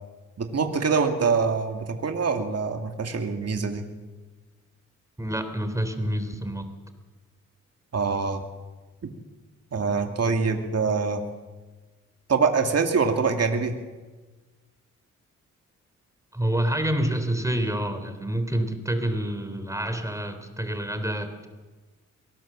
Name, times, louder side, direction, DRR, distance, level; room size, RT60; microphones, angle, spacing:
voice 1, 0.4-3.8 7.9-8.4 9.7-11.2 12.3-13.8, right 5 dB, 50° right, 4 dB, 2.4 m, -24 dB
voice 2, 5.2-6.6 16.3-21.5, right 1 dB, 10° right, 8 dB, 3.5 m, -27 dB
23.0 x 18.5 x 7.4 m, 1.3 s
cardioid pair, 70°, 32 cm